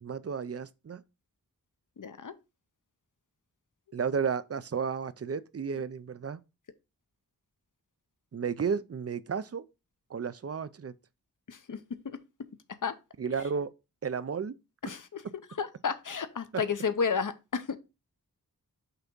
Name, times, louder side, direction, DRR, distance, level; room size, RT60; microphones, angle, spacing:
voice 1, 0.0-1.0 3.9-6.4 8.3-9.6 10.1-10.9 13.2-13.7 14.0-14.6, right 6 dB, 40° right, 0.5 m, -33 dB
voice 2, 2.0-2.3 11.5-12.2 12.8-13.0 14.8-15.2 15.6-17.8, left 6 dB, 55° left, 0.8 m, -32 dB
5.8 x 3.5 x 5.3 m
wide cardioid pair, 65°, 36 cm